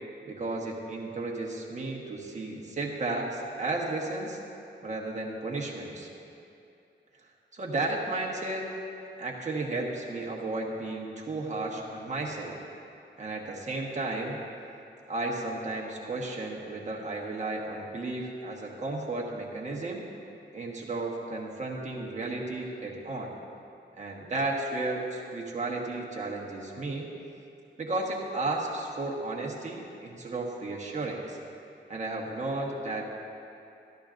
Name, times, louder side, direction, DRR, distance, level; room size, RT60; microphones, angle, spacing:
voice 1, 0.2-4.4 4.8-6.1 7.5-8.7 9.2-12.6 13.2-14.4 15.1-20.0 20.5-23.3 24.0-27.1 27.8-31.4 31.9-33.0, right 2 dB, 40° right, -2 dB, 1.2 m, -33 dB
13.0 x 12.5 x 2.5 m, 2.7 s
wide cardioid pair, 160°, 19 cm